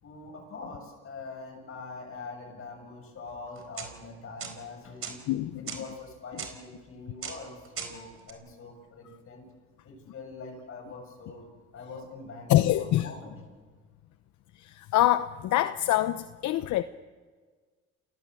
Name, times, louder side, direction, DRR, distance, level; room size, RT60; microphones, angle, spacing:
voice 1, 0.0-5.2 5.5-9.4 9.8-11.5 11.7-13.4, left 3 dB, 50° left, 7.6 m, -43 dB
sound 1, 3.6-3.9 4.4-4.5 5.0-5.1 5.7-5.8 6.4-6.5 7.2-7.4 7.6-7.9 8.2-8.3, right 7 dB, 50° right, 4.3 m, -36 dB
voice 2, 5.3-5.8 12.5-13.1 14.6-16.8, left 14 dB, 75° left, 0.9 m, -25 dB
28.5 x 17.5 x 7.7 m
cardioid pair, 100°, 29 cm